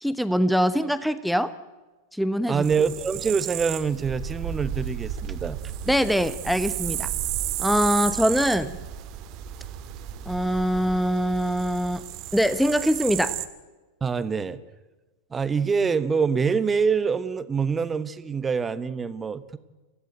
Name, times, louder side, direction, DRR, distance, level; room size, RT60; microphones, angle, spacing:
voice 1, 0.0-1.5 2.1-2.6 5.9-7.1 7.6-8.7 10.3-12.0 12.3-13.4, equal, ahead, 13 dB, 1.0 m, -23 dB
voice 2, 2.5-5.6 14.0-14.6 15.3-19.6, right 5 dB, 15° right, 14 dB, 1.2 m, -25 dB
sound 1, 2.6-13.5, right 11 dB, 40° right, 2.0 m, -33 dB
29.0 x 16.5 x 9.2 m, 1.2 s
figure-of-eight pair, 90°, 0 cm